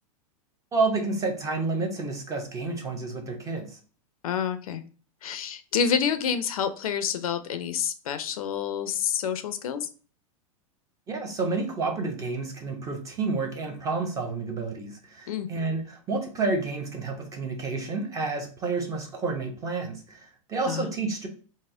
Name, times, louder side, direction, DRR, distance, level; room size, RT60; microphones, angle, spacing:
voice 1, 0.7-3.8 11.1-21.3, right 3 dB, 20° right, 3 dB, 0.7 m, -30 dB
voice 2, 4.2-4.8 5.2-9.9 15.3-15.5 20.7-20.8, left 7 dB, 85° left, 11 dB, 0.5 m, -28 dB
4.1 x 2.0 x 3.7 m, 0.39 s
hypercardioid pair, 130°, 18 cm